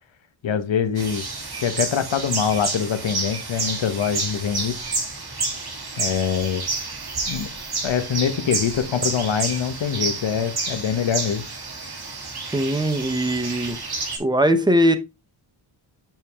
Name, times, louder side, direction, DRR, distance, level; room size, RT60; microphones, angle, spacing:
voice 1, 0.4-1.2 1.6-4.8 6.0-6.6 7.3-7.5 7.8-11.4, left 7 dB, 65° left, 1.3 m, -24 dB
sound 1, 1.0-14.2, right 3 dB, 50° right, 3.0 m, -30 dB
voice 2, 12.5-13.8 14.2-15.0, equal, 10° right, 1.0 m, -20 dB
7.5 x 5.3 x 3.6 m
wide cardioid pair, 130°, 49 cm